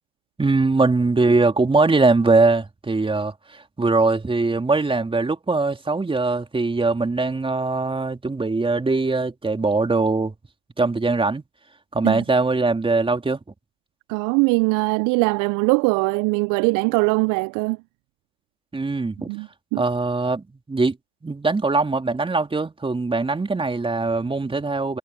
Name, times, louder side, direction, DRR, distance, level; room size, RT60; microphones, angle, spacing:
voice 1, 0.4-10.3 10.8-11.4 11.9-13.4 18.7-19.3 19.8-21.0 21.2-25.0, right 3 dB, 10° right, 3.5 m, -21 dB
voice 2, 14.1-17.8 19.3-19.8, right 30 dB, 50° right, 0.7 m, -21 dB
hypercardioid pair, 80°, 41 cm